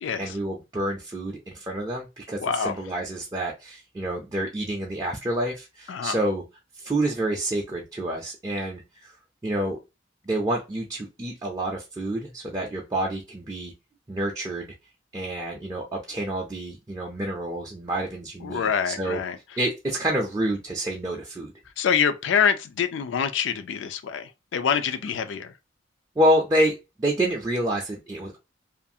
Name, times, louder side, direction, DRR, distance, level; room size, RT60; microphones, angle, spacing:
voice 1, 0.2-6.4 6.8-9.1 9.4-9.8 10.3-13.7 14.1-14.7 15.1-19.2 19.6-21.5 26.2-28.4, right 1 dB, 20° right, 0.4 m, -28 dB
voice 2, 2.4-2.8 5.9-6.2 18.4-19.4 21.8-25.5, left 7 dB, 75° left, 0.3 m, -25 dB
2.5 x 2.4 x 2.6 m
head